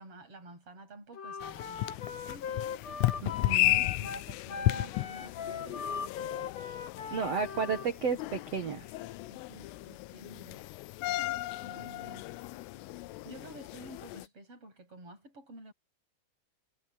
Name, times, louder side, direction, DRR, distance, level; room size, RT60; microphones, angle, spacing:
voice 1, 0.0-2.7 3.5-6.5 7.2-7.4 9.3-10.7 11.6-12.3 13.2-15.7, right 2 dB, 25° right, 8.6 m, -51 dB
Wind instrument woodwind instrument, 1.1-7.9, left 6 dB, 40° left, 3.0 m, -39 dB
sound 1, 1.4-14.3, left 18 dB, 85° left, 3.3 m, -34 dB
voice 2, 3.2-3.8 7.1-8.9, right 6 dB, 80° right, 1.4 m, -33 dB
omnidirectional pair, 5.8 m